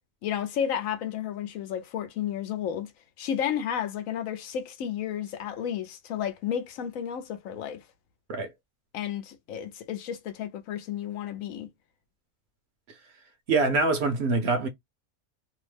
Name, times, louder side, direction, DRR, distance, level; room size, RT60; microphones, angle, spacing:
voice 1, 0.2-2.9 3.2-7.8 8.9-11.7, left 9 dB, 80° left, 1.0 m, -32 dB
voice 2, 13.5-14.7, right 3 dB, 60° right, 0.8 m, -24 dB
2.8 x 2.0 x 3.1 m
omnidirectional pair, 1.4 m